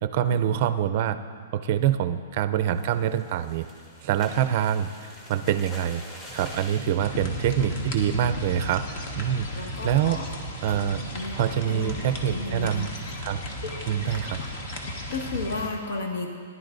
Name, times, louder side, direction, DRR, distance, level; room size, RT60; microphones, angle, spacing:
voice 1, 0.0-1.2 1.5-3.6 4.0-6.0 6.3-8.8 9.2-10.2 10.6-12.9 13.2-13.4 13.9-14.4, right 10 dB, 40° right, 10 dB, 0.5 m, -25 dB
sound 1, 2.7-8.5 8.9-9.2 9.5-9.6 10.0-10.3, left 1 dB, 20° left, 1.4 m, -46 dB
sound 2, 7.0-15.7, equal, 40° left, 1.5 m, -35 dB
voice 2, 9.5-10.2 11.1-11.3 11.6-12.9 13.6-13.7 14.1-14.5 14.8-16.3, left 3 dB, 75° left, 1 dB, 1.8 m, -34 dB
18.5 x 11.0 x 2.6 m, 2.1 s
hypercardioid pair, 160°, 0 cm